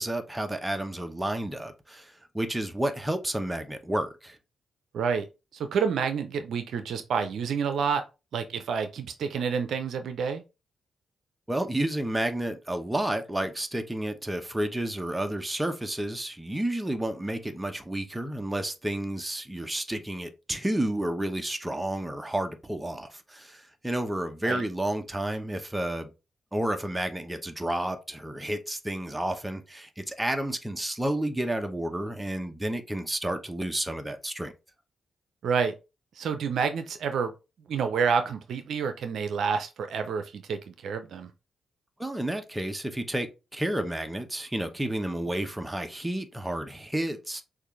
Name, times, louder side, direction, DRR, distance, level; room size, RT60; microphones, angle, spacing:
voice 1, 0.0-4.4 11.5-26.1 26.5-34.5 42.0-47.4, right 1 dB, 15° right, 0.9 m, -31 dB
voice 2, 4.9-5.2 5.5-8.0 8.3-10.4 24.4-24.6 35.4-35.7 36.2-37.3 37.7-41.3, right 6 dB, 75° right, 0.5 m, -28 dB
6.4 x 2.5 x 3.1 m
supercardioid pair, 50°, 0 cm